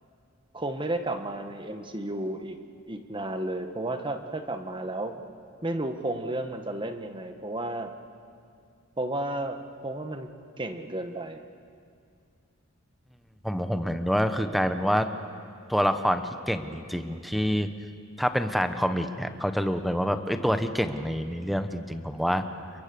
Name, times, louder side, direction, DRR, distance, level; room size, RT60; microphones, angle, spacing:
voice 1, 0.5-2.6 2.9-5.2 5.6-7.9 9.0-10.3 10.6-11.4, right 1 dB, 25° right, 7 dB, 1.3 m, -32 dB
voice 2, 13.4-15.1 15.7-17.7 18.2-22.4, equal, ahead, 8 dB, 1.0 m, -27 dB
30.0 x 22.5 x 6.9 m, 2.3 s
head